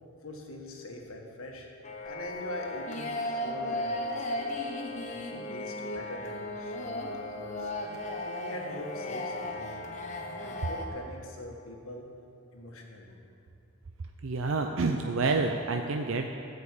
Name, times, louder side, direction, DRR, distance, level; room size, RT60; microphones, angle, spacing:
voice 1, 0.2-1.7 2.0-4.6 5.1-7.7 8.2-12.1 12.5-13.2, left 1 dB, 70° left, 0 dB, 1.7 m, -43 dB
sound 1, 1.8-10.9, left 1 dB, 30° left, 1.0 m, -35 dB
voice 2, 14.2-16.3, right 3 dB, 65° right, 4 dB, 0.6 m, -28 dB
13.5 x 5.4 x 8.4 m, 2.6 s
head